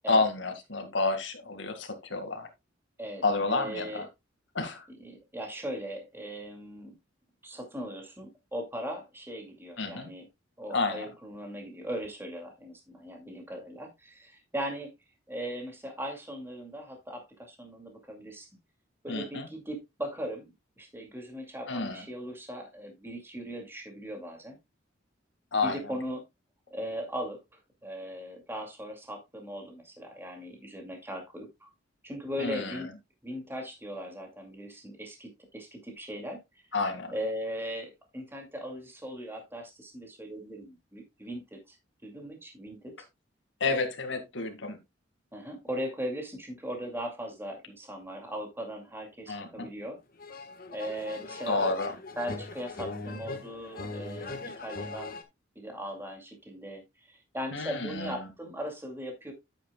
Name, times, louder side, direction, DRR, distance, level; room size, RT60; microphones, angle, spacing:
voice 1, 0.1-2.5 3.2-4.1 4.5-4.8 9.8-10.1 10.7-11.1 19.1-19.5 21.7-22.0 25.5-25.8 32.4-32.8 36.7-37.1 43.6-44.8 49.3-49.7 51.5-51.9 57.5-58.3, left 3 dB, 70° left, 2.0 m, -30 dB
voice 2, 3.0-4.1 4.9-7.0 7.4-10.3 10.6-14.9 15.3-18.5 19.0-20.5 20.8-24.6 25.6-26.3 26.7-27.4 27.8-31.7 32.0-32.9 33.2-36.6 37.1-41.8 42.0-42.9 45.3-50.0 50.7-51.7 52.2-55.2 55.6-59.3, equal, 10° right, 2.2 m, -39 dB
sound 1, 50.2-55.2, left 3 dB, 50° left, 1.3 m, -40 dB
9.8 x 9.0 x 2.2 m
head